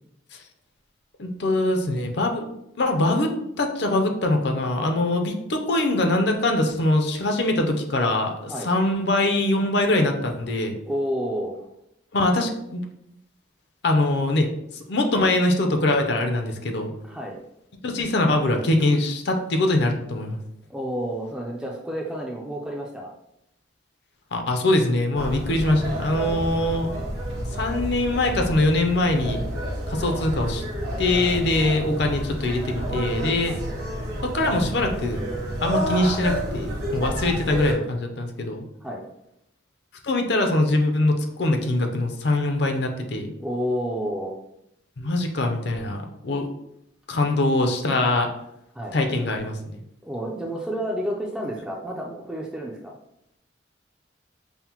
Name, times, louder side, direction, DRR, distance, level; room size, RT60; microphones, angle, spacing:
voice 1, 1.2-2.5 2.8-3.3 3.6-10.8 12.1-12.8 13.8-16.9 17.8-20.4 24.3-26.9 27.5-29.4 29.9-30.6 31.0-33.5 34.2-35.3 35.6-38.7 40.0-43.3 45.0-46.5 47.1-48.3 48.9-49.8, left 2 dB, 55° left, 4 dB, 0.5 m, -23 dB
voice 2, 10.9-11.7 17.0-17.4 20.7-23.1 31.6-31.8 33.5-33.6 37.0-37.2 38.8-39.0 43.4-44.4 48.7-49.0 50.0-52.9, equal, 5° right, -2 dB, 0.4 m, -30 dB
sound 1, 25.1-37.7, right 1 dB, 55° right, 1.2 m, -30 dB
5.6 x 2.1 x 2.9 m, 0.81 s
head